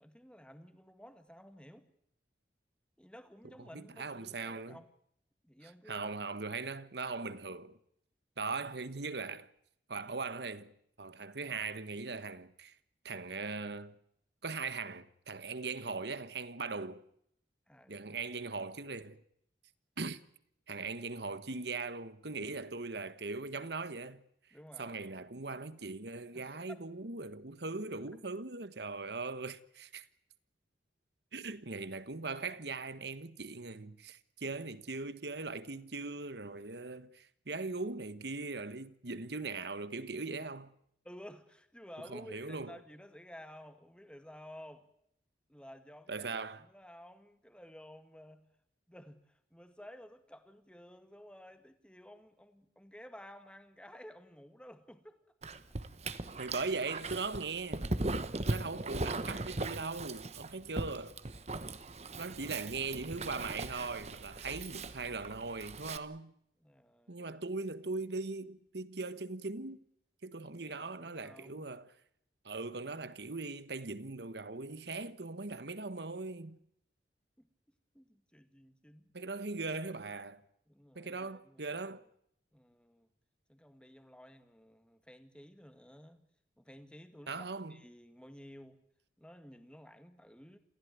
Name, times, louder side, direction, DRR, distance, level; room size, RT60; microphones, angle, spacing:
voice 1, 0.0-1.9 3.0-4.9 5.4-6.1 17.7-18.0 24.5-25.0 26.3-26.8 41.0-44.9 45.5-48.5 48.9-55.2 62.1-62.4 66.6-67.3 70.4-71.7 77.4-77.5 77.9-79.1 80.7-81.8 82.5-83.1 83.5-86.2 86.6-88.8 89.2-90.6, equal, 5° left, 1.9 m, -54 dB
voice 2, 3.7-4.8 5.6-7.8 8.4-9.5 9.9-10.7 11.0-12.7 13.0-13.9 14.4-17.0 17.9-19.2 20.0-20.2 20.7-24.2 24.8-30.0 31.3-40.7 42.1-42.7 46.1-46.6 56.4-57.9 58.5-61.2 62.2-66.3 67.1-69.8 70.2-71.9 72.4-76.6 79.1-80.4 80.9-82.0 87.3-87.8, right 3 dB, 65° right, 1.3 m, -40 dB
Dog, 55.4-66.0, right 2 dB, 35° right, 1.2 m, -39 dB
28.0 x 15.5 x 9.5 m
head